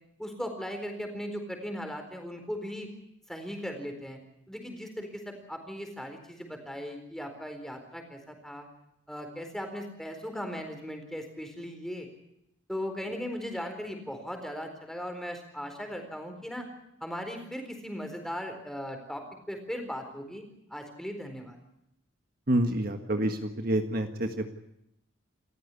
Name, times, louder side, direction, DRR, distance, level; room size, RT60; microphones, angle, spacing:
voice 1, 0.2-2.9 3.3-4.2 4.5-8.7 9.1-12.1 12.7-16.7 17.0-20.4 20.7-21.6, equal, ahead, 5 dB, 4.2 m, -38 dB
voice 2, 22.5-24.5, right 1 dB, 50° right, 6 dB, 1.6 m, -28 dB
29.0 x 14.5 x 8.4 m, 0.81 s
head